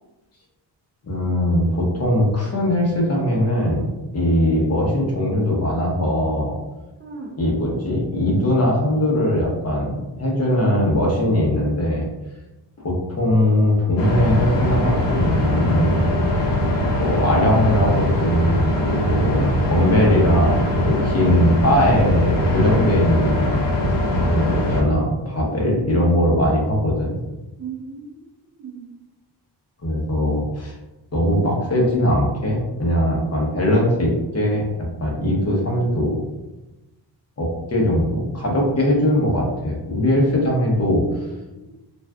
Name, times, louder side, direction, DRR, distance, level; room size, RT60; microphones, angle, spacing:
voice 1, 1.0-3.9 4.1-6.6 7.4-12.0 12.8-16.1 17.0-23.5 24.2-27.2 29.8-30.7 31.1-34.7 35.0-36.2 37.4-41.0, left 1 dB, 35° left, -1 dB, 0.8 m, -20 dB
voice 2, 7.0-7.3 17.2-17.6 27.6-28.3 28.6-28.8 40.8-41.7, right 5 dB, 30° right, -4 dB, 0.5 m, -36 dB
sound 1, 14.0-24.8, left 1 dB, 70° left, 0.8 m, -21 dB
2.5 x 2.3 x 3.3 m, 1.0 s
cardioid pair, 105°, 43 cm